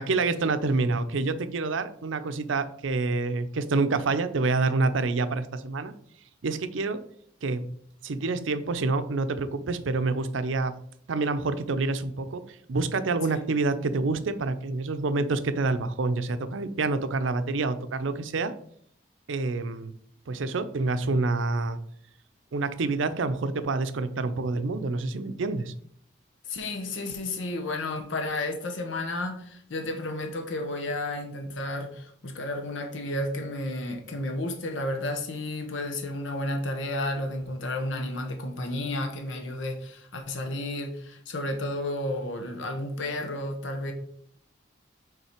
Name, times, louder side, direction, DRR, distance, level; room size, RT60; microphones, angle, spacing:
voice 1, 0.0-5.9 6.4-7.0 7.4-7.7 8.0-10.7 11.1-18.5 19.3-19.9 20.3-21.8 22.5-25.7, right 3 dB, 85° right, 11 dB, 0.5 m, -27 dB
voice 2, 26.5-43.9, left 1 dB, 80° left, 4 dB, 0.8 m, -32 dB
5.6 x 3.8 x 4.4 m, 0.64 s
head